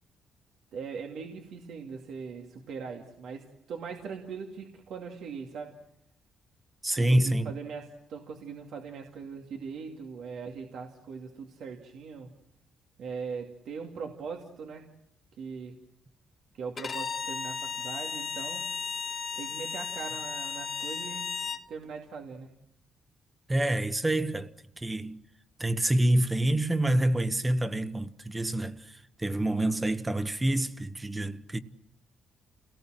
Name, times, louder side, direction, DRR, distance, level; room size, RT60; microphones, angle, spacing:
voice 1, 0.7-5.8 6.9-12.3 13.0-14.9 15.4-15.8 16.5-18.7 19.3-21.3 21.7-22.5, right 5 dB, 75° right, 2.4 m, -40 dB
voice 2, 6.8-7.5 23.5-24.5 24.8-25.2 25.6-31.6, right 1 dB, 15° right, 1.3 m, -27 dB
Bowed string instrument, 16.8-21.7, left 5 dB, 40° left, 1.7 m, -35 dB
29.0 x 18.5 x 7.7 m
cardioid pair, 90°, 0 cm